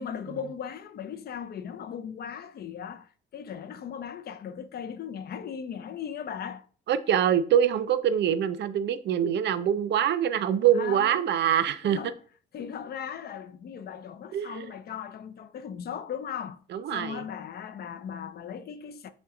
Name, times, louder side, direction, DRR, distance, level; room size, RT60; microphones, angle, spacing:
voice 1, 0.0-6.7 10.7-11.3 11.8-12.2 12.5-16.6 16.9-19.1, left 8 dB, 55° left, 0.4 m, -38 dB
voice 2, 6.9-12.0 14.3-14.7 16.7-17.2, right 9 dB, 60° right, 0.5 m, -24 dB
5.6 x 2.2 x 3.6 m
cardioid pair, 90°, 20 cm